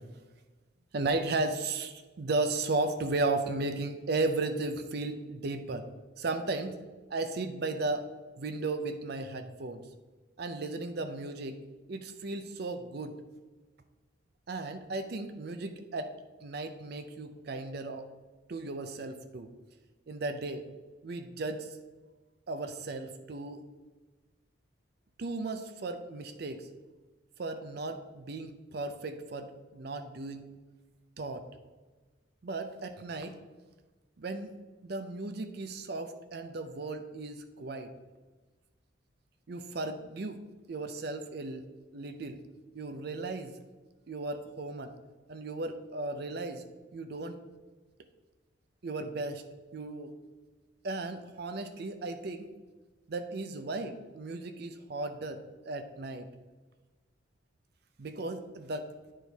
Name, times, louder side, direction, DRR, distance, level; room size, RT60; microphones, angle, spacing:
voice 1, 0.9-5.9 6.2-6.8 7.1-8.1 8.4-9.8 10.4-11.6 11.9-13.2 14.5-16.1 16.4-18.1 18.5-19.5 20.1-20.6 21.0-21.7 22.5-23.6 25.2-26.7 27.4-30.5 31.2-31.4 32.4-33.3 34.2-34.6 34.8-37.9 39.5-42.4 42.7-43.5 44.1-44.9 45.3-46.6 46.9-47.4 48.8-49.4 49.7-50.1 50.8-52.5 53.1-55.4 55.7-56.3 58.0-58.9, right 3 dB, 55° right, 8 dB, 0.5 m, -35 dB
9.6 x 4.5 x 3.4 m, 1.2 s
head